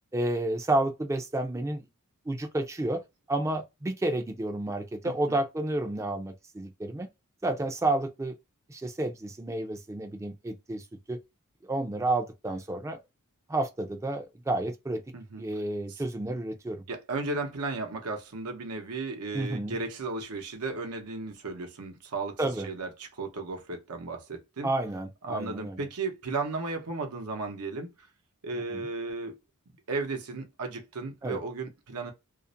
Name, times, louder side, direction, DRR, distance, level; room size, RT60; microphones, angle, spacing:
voice 1, 0.1-1.9 2.3-3.0 3.3-7.1 7.4-8.3 8.7-11.2 11.6-13.0 13.5-15.0 15.4-16.8 19.3-19.8 22.4-22.7 24.6-25.8 28.7-28.8 31.2-31.4, right 2 dB, 15° right, 0.4 m, -30 dB
voice 2, 5.0-5.4 15.1-15.4 15.9-16.0 16.9-24.7 25.2-27.9 28.4-29.4 29.9-32.1, right 3 dB, 85° right, 0.8 m, -35 dB
2.4 x 2.1 x 2.6 m
head